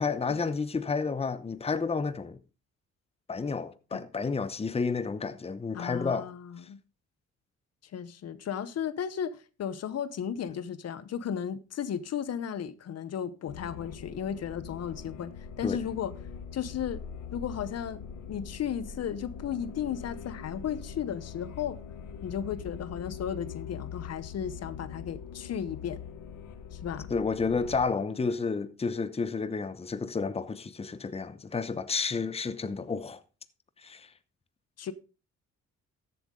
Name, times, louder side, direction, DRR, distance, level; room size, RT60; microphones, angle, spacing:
voice 1, 0.0-2.4 3.3-6.3 15.6-15.8 27.1-33.2 33.8-34.1, left 4 dB, 20° left, 0.9 m, -31 dB
voice 2, 5.7-6.8 7.8-16.1 16.5-17.0 17.3-21.8 22.2-26.0 26.7-27.1 34.8-34.9, left 8 dB, 55° left, 0.9 m, -35 dB
sound 1, 13.5-27.9, left 7 dB, 85° left, 1.4 m, -43 dB
14.0 x 7.9 x 3.7 m
cardioid pair, 90°, 30 cm